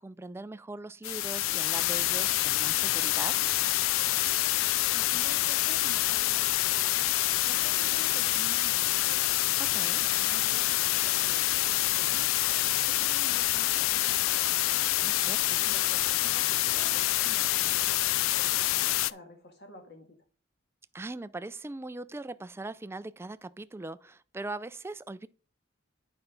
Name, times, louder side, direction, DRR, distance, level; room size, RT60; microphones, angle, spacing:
voice 1, 0.0-3.4 9.6-10.0 15.0-15.6 20.9-25.3, right 2 dB, 10° right, 0.3 m, -40 dB
sound 1, 1.0-19.1, left 16 dB, 85° left, 0.4 m, -27 dB
voice 2, 4.9-7.0 7.4-9.3 10.0-14.8 15.7-20.2, left 1 dB, 55° left, 1.9 m, -49 dB
9.2 x 5.4 x 3.8 m
head